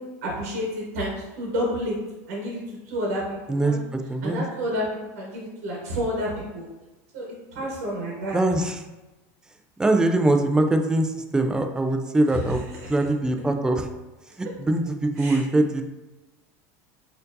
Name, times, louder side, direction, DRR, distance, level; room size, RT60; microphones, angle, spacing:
voice 1, 0.0-2.0 2.3-3.8 4.2-4.8 5.1-6.6 7.1-8.4 12.3-12.9 15.2-15.4, equal, 75° right, -3 dB, 1.0 m, -30 dB
voice 2, 3.5-4.4 8.3-8.8 9.8-12.6 12.9-13.9 14.4-15.8, right 2 dB, 10° right, 5 dB, 0.3 m, -22 dB
4.2 x 2.7 x 2.6 m, 1.1 s
supercardioid pair, 125°, 8 cm